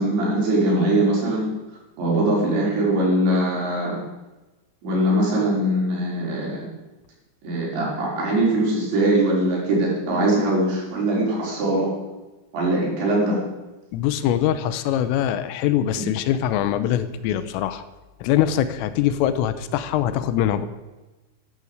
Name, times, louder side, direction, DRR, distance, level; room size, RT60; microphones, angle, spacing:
voice 1, 0.0-1.5 2.0-4.0 4.8-6.6 7.4-11.9 12.5-13.4, right 1 dB, 60° right, -4 dB, 7.3 m, -21 dB
voice 2, 13.9-17.8 18.2-20.7, left 11 dB, 85° left, 12 dB, 3.4 m, -23 dB
13.0 x 12.0 x 8.1 m, 1.1 s
omnidirectional pair, 5.9 m